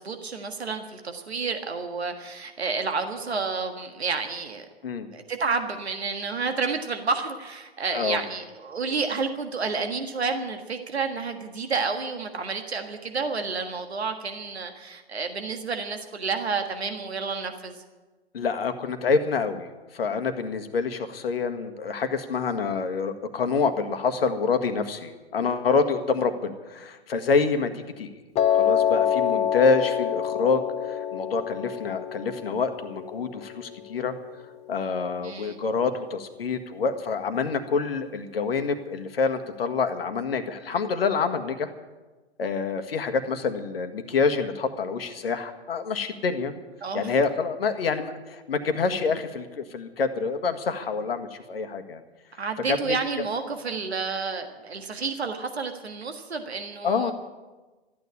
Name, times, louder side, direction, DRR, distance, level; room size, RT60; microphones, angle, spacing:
voice 1, 0.0-4.6 5.1-17.7 35.2-35.6 46.8-47.1 52.4-57.1, right 4 dB, 75° right, 6 dB, 1.6 m, -30 dB
voice 2, 7.9-8.2 18.3-28.1 28.5-34.1 34.7-41.7 42.4-46.5 46.9-52.0 52.7-52.9 56.8-57.1, left 5 dB, 65° left, 9 dB, 1.7 m, -27 dB
Piano, 28.4-34.5, left 9 dB, 20° left, 1.1 m, -27 dB
14.0 x 9.4 x 9.9 m, 1.2 s
figure-of-eight pair, 115°, 32 cm